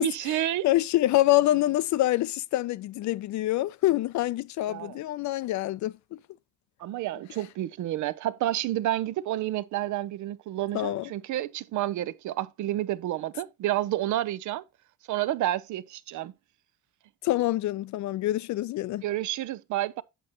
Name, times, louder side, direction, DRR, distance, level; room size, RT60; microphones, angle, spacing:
voice 1, 0.0-0.7 4.7-5.0 6.8-14.6 15.1-16.3 19.0-20.0, right 14 dB, 75° right, 0.5 m, -30 dB
voice 2, 0.6-5.9 10.7-11.1 17.2-19.0, left 15 dB, 70° left, 0.4 m, -25 dB
8.0 x 6.0 x 2.9 m
cardioid pair, 90°, 30 cm